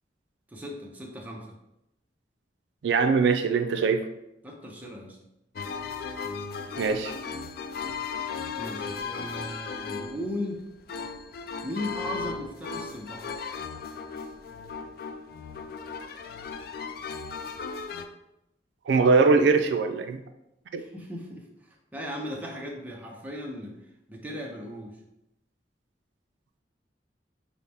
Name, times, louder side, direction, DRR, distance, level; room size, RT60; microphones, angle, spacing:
voice 1, 0.5-1.6 4.4-5.2 8.1-8.3 8.6-10.7 11.6-13.3 20.8-23.8 24.1-25.0, equal, 10° right, -1 dB, 0.6 m, -37 dB
voice 2, 2.8-4.0 6.8-7.1 18.9-20.2 20.7-20.8, right 4 dB, 85° right, 7 dB, 0.4 m, -22 dB
sound 1, 5.6-18.1, left 5 dB, 55° left, 0.3 m, -36 dB
5.5 x 2.0 x 3.4 m, 0.87 s
head